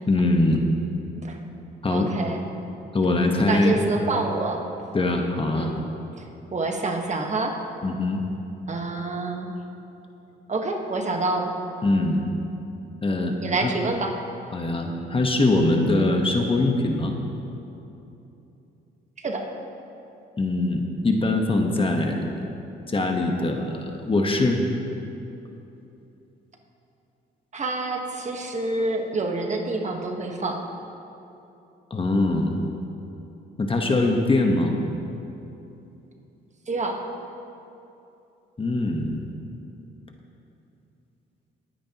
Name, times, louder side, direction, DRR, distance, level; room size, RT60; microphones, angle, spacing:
voice 1, 0.1-0.6 1.8-2.1 2.9-3.8 4.9-5.7 7.8-8.2 11.8-12.2 13.0-13.7 14.5-17.2 20.4-22.3 22.9-24.6 31.9-32.6 33.6-34.7 38.6-39.2, left 2 dB, 25° left, 3 dB, 1.2 m, -22 dB
voice 2, 1.9-2.4 3.5-4.6 5.6-5.7 6.5-7.5 8.7-9.5 10.5-11.5 13.4-14.1 19.2-19.5 27.5-30.6 36.7-37.0, right 3 dB, 35° right, 2 dB, 1.4 m, -27 dB
20.0 x 9.6 x 3.0 m, 2.9 s
cardioid pair, 90°, 20 cm